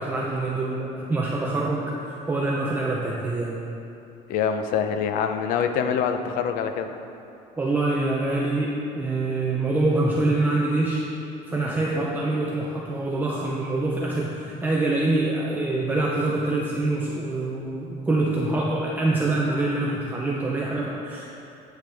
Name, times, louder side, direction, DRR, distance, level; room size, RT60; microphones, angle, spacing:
voice 1, 0.0-3.7 7.6-11.1 11.5-21.3, right 2 dB, 10° right, -3 dB, 0.6 m, -25 dB
voice 2, 4.3-6.9, left 7 dB, 65° left, 7 dB, 0.6 m, -25 dB
8.8 x 8.0 x 3.5 m, 2.8 s
cardioid pair, 150°, 16 cm